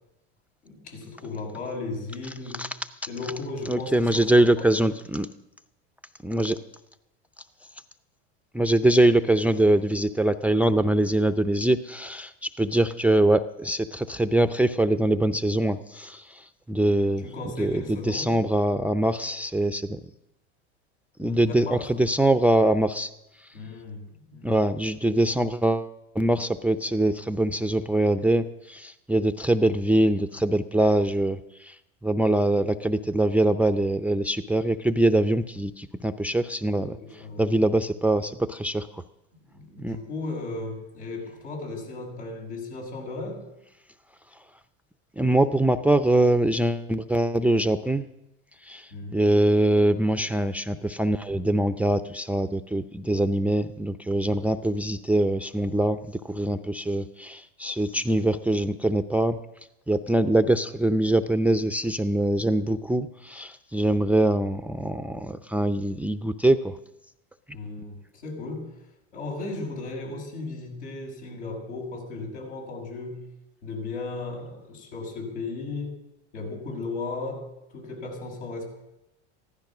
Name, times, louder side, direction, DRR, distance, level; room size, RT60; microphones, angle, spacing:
voice 1, 0.6-2.6 3.1-4.7 8.8-8.9 17.2-18.3 21.2-21.8 23.5-24.6 36.7-37.5 39.5-43.5 48.9-49.2 67.5-68.7 69.1-73.2 73.6-76.0 76.3-78.7, left 3 dB, 85° left, -1 dB, 6.1 m, -36 dB
voice 2, 3.7-5.3 6.2-6.6 8.5-17.3 17.6-20.0 21.2-23.1 24.4-31.8 32.0-39.0 39.8-40.0 45.2-48.1 48.7-59.4 59.9-66.7, right 1 dB, 5° right, 10 dB, 0.5 m, -23 dB
15.0 x 13.5 x 6.1 m, 0.90 s
supercardioid pair, 100°, 34 cm